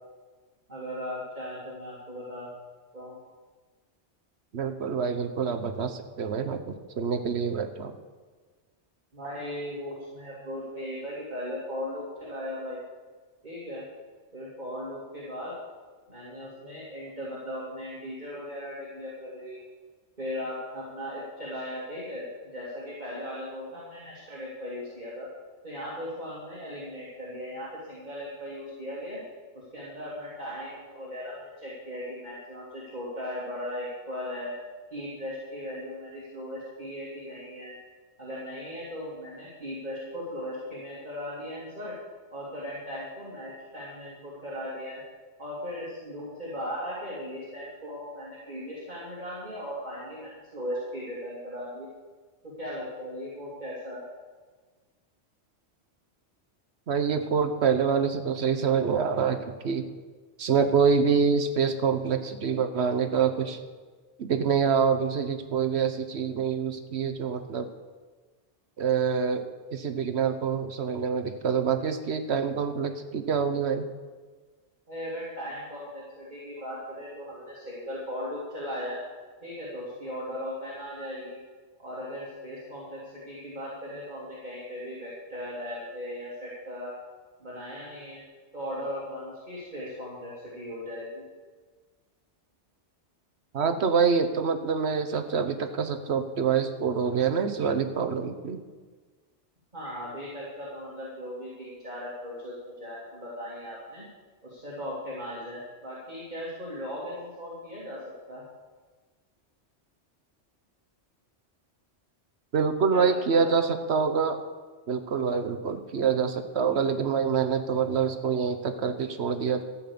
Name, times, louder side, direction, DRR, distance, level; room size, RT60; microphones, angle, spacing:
voice 1, 0.7-2.5 2.9-3.2 9.1-12.8 13.4-13.8 14.3-15.6 16.1-19.6 20.2-25.3 25.6-29.2 29.5-34.5 34.9-37.7 38.2-42.0 42.3-45.0 45.4-51.9 52.4-54.0 74.9-79.0 79.4-81.4 81.8-87.0 87.4-88.2 88.5-91.2 99.7-104.1 104.4-108.0 108.3-108.4 112.9-113.5, equal, 40° right, -7 dB, 2.7 m, -37 dB
voice 2, 4.5-7.9 56.9-59.9 60.4-63.6 64.2-67.7 68.8-73.9 93.5-98.6 112.5-114.4 114.9-119.6, right 6 dB, 65° right, 8 dB, 1.2 m, -26 dB
14.5 x 5.9 x 8.5 m, 1.4 s
omnidirectional pair, 1.2 m